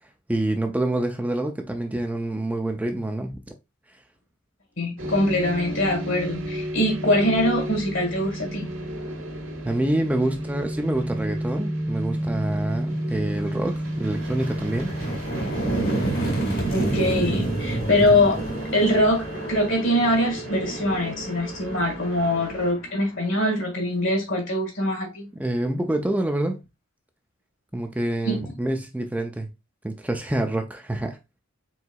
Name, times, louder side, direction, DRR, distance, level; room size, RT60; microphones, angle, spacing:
voice 1, 0.3-3.4 9.6-14.9 25.4-26.6 27.7-29.5 29.8-31.2, right 1 dB, 5° right, 0.4 m, -27 dB
voice 2, 4.8-8.7 16.7-18.4 18.7-25.3 28.3-28.4, left 1 dB, 65° left, 1.9 m, -23 dB
sound 1, 5.0-22.7, right 1 dB, 70° right, 1.5 m, -32 dB
sound 2, 12.3-12.5 12.9-23.7, right 2 dB, 45° left, 1.4 m, -30 dB
4.5 x 3.8 x 2.3 m
head